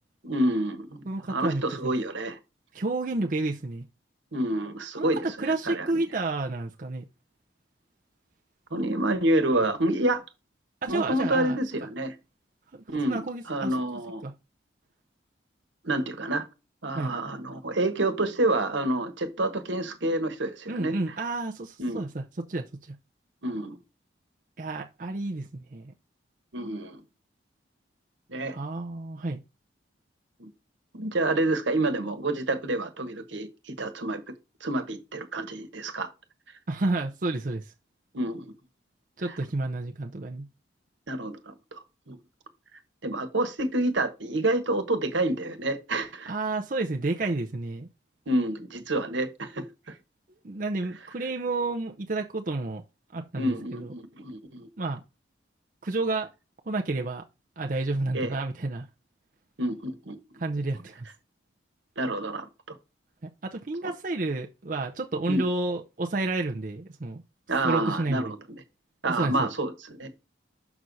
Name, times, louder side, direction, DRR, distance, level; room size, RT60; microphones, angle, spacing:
voice 1, 0.2-2.4 4.3-6.0 8.7-10.2 10.9-12.1 12.9-13.2 13.5-14.2 15.8-16.5 16.8-20.9 21.8-22.0 23.4-23.8 26.5-27.0 28.3-28.6 30.4-30.5 30.9-34.2 34.6-36.1 38.1-38.5 41.1-42.2 43.0-46.3 48.3-49.7 53.3-54.7 58.1-58.3 59.6-60.2 62.0-62.8 65.3-65.4 67.5-68.4 69.0-70.1, right 1 dB, 80° right, 1.3 m, -28 dB
voice 2, 1.1-1.9 2.7-3.8 5.0-5.1 5.4-7.1 10.8-11.6 12.7-13.7 14.2-14.3 16.9-17.1 20.7-22.9 24.6-25.9 28.5-29.4 36.7-37.7 39.2-40.5 46.3-47.9 50.4-52.8 53.1-53.9 54.8-55.0 55.8-56.3 56.7-57.2 57.6-58.9 60.4-61.1 63.2-67.2 67.6-68.3 69.2-69.5, right 2 dB, 45° right, 0.6 m, -30 dB
6.3 x 6.0 x 4.0 m
head